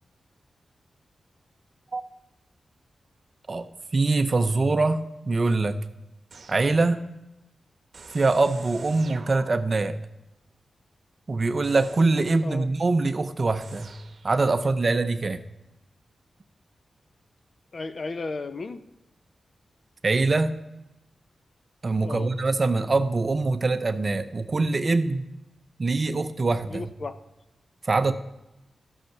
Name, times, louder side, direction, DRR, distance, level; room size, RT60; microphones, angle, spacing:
voice 1, 3.9-5.8 6.5-7.0 8.1-10.0 11.3-13.9 14.2-15.4 20.0-20.6 21.8-25.3 25.8-26.9 27.8-28.1, right 3 dB, 45° right, 9 dB, 0.7 m, -23 dB
sound 1, 6.3-7.0 7.9-9.9 11.6-12.4 13.6-14.4, right 4 dB, 65° right, 1.1 m, -47 dB
voice 2, 17.7-18.8 22.0-22.3 26.7-27.2, left 3 dB, 55° left, 11 dB, 0.8 m, -34 dB
12.5 x 6.5 x 5.9 m, 0.91 s
cardioid pair, 75°, 0 cm